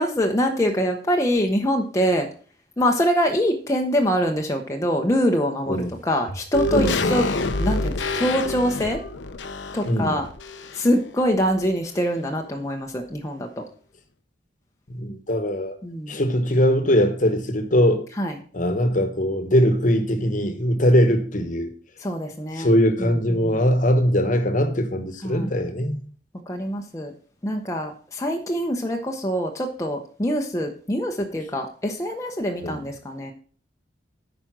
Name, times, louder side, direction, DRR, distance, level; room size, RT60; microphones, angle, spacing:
voice 1, 0.0-2.3 2.8-7.3 7.6-9.0 9.7-10.3 10.7-13.6 15.8-16.2 18.2-18.4 22.0-22.7 23.0-23.6 25.2-25.5 26.5-27.1 27.4-33.3, equal, 15° left, 0.8 m, -24 dB
sound 1, 6.5-11.0 11.3-11.4, left 2 dB, 85° left, 0.8 m, -27 dB
voice 2, 6.7-7.2 9.9-10.2 14.9-15.8 16.1-18.0 18.5-21.7 22.6-26.0 32.6-32.8, equal, 45° left, 1.2 m, -21 dB
9.2 x 5.1 x 6.0 m
head